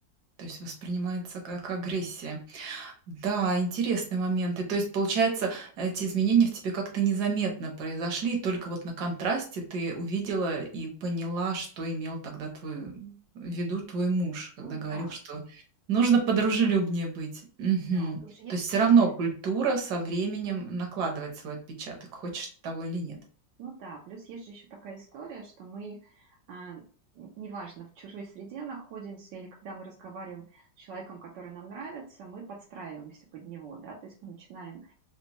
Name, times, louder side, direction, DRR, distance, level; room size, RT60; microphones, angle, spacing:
voice 1, 0.4-13.1 13.4-15.6 15.9-17.3 17.6-18.2 18.5-23.2, right 5 dB, 65° right, 1 dB, 1.4 m, -28 dB
voice 2, 14.6-15.1 17.9-18.5 23.6-26.9 27.1-34.9, right 5 dB, 80° right, -1 dB, 1.3 m, -43 dB
4.1 x 2.1 x 2.8 m, 0.41 s
omnidirectional pair, 2.0 m